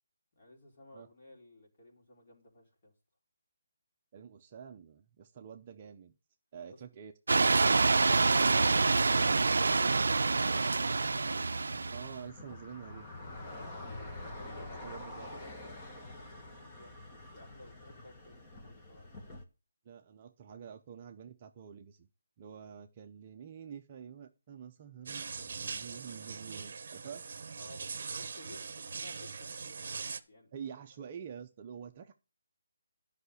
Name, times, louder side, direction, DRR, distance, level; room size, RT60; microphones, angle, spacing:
voice 1, 0.3-2.9 6.7-6.8 13.4-13.8 14.4-19.1 27.6-30.5, left 1 dB, 35° left, 3.3 m, -56 dB
voice 2, 4.1-6.1 6.5-7.1 11.9-13.1 14.8-15.3 19.8-22.1 22.4-27.2 30.5-32.1, right 7 dB, 25° right, 0.6 m, -47 dB
sound 1, 7.3-12.2, right 3 dB, 80° right, 0.4 m, -26 dB
sound 2, 8.4-19.4, left 1 dB, 15° left, 1.3 m, -47 dB
sound 3, 25.1-30.2, right 5 dB, 45° right, 1.0 m, -41 dB
10.5 x 5.7 x 6.5 m
hypercardioid pair, 175°, 0 cm